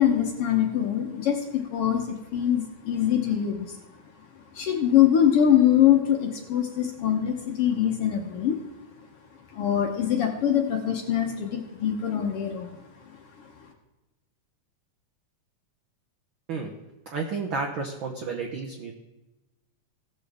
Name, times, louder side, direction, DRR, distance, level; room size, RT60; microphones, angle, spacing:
voice 1, 0.0-3.8 4.5-8.6 9.5-12.7, left 10 dB, 65° left, 2 dB, 1.6 m, -23 dB
voice 2, 17.1-18.9, right 4 dB, 70° right, 1 dB, 1.1 m, -31 dB
17.5 x 6.8 x 3.5 m, 1.0 s
omnidirectional pair, 3.5 m